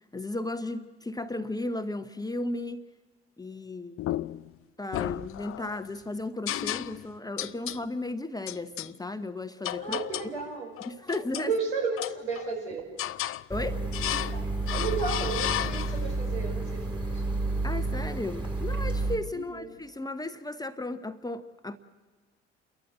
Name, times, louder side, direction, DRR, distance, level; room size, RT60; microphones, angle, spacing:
voice 1, 0.0-2.8 3.4-4.0 4.8-10.0 10.9-11.5 13.5-13.8 17.6-21.8, left 2 dB, 10° left, 9 dB, 1.0 m, -35 dB
sound 1, 4.0-4.5 4.9-5.8 6.5-7.1 7.4-7.8 8.5-8.9 9.6-10.4 10.8-11.5 12.0-12.6 13.0-13.4 13.9-14.4 14.7-16.1, left 14 dB, 40° left, 0.6 m, -33 dB
voice 2, 9.8-10.7 11.4-12.9 14.1-17.3 19.3-19.7, right 4 dB, 80° right, -1 dB, 5.6 m, -34 dB
sound 2, 13.5-19.2, right 2 dB, 15° right, 2.8 m, -31 dB
28.5 x 14.0 x 7.8 m, 1.3 s
hypercardioid pair, 55°, 32 cm